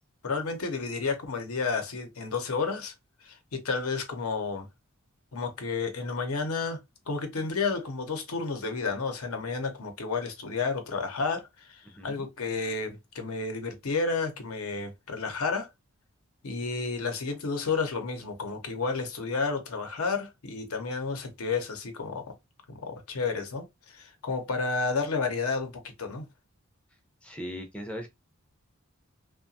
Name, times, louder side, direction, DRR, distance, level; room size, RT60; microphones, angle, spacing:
voice 1, 0.2-2.9 3.2-4.7 5.3-6.8 7.1-15.7 16.4-22.3 22.7-25.7 26.0-26.2, left 4 dB, 85° left, 0.7 m, -31 dB
voice 2, 11.8-12.3 27.2-28.1, equal, 5° left, 0.5 m, -39 dB
2.8 x 2.2 x 2.6 m
head